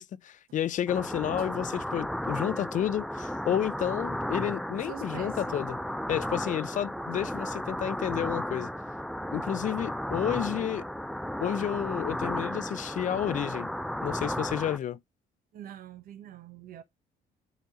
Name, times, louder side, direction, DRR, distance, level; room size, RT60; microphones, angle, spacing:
voice 1, 0.0-5.8 6.1-8.7 9.3-10.9 11.4-13.7 14.0-15.0, left 10 dB, 50° left, 0.5 m, -31 dB
sound 1, 0.9-14.8, equal, ahead, 0.4 m, -34 dB
voice 2, 4.8-5.5 15.5-16.8, right 10 dB, 60° right, 1.2 m, -45 dB
9.5 x 4.2 x 4.2 m
cardioid pair, 110°, 17 cm